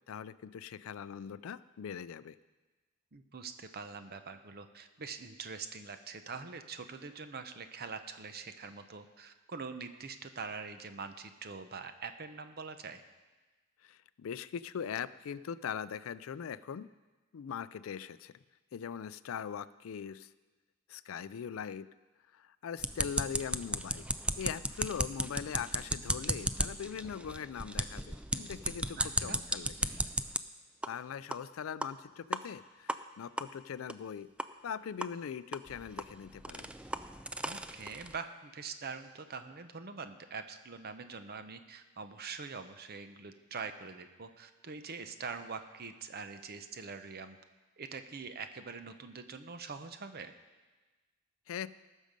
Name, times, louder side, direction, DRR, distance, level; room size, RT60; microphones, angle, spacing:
voice 1, 0.1-2.4 13.8-16.9 17.3-18.3 18.7-20.3 20.9-21.9 22.3-24.1 24.4-29.7 30.9-34.3 34.6-36.7 51.5-51.7, left 7 dB, 75° left, 17 dB, 0.4 m, -41 dB
voice 2, 3.1-13.0 29.0-29.4 37.4-47.4 47.8-50.3, right 5 dB, 50° right, 9 dB, 0.8 m, -44 dB
sound 1, 22.8-30.4 30.8-30.9 31.3-31.4 31.8-31.9 32.3-32.4 32.9-33.0 33.4-33.5 33.9-34.0 34.4-34.5 35.0-35.1 35.5-38.2, right 2 dB, 5° right, 0.3 m, -35 dB
19.0 x 6.4 x 5.2 m, 1.2 s
head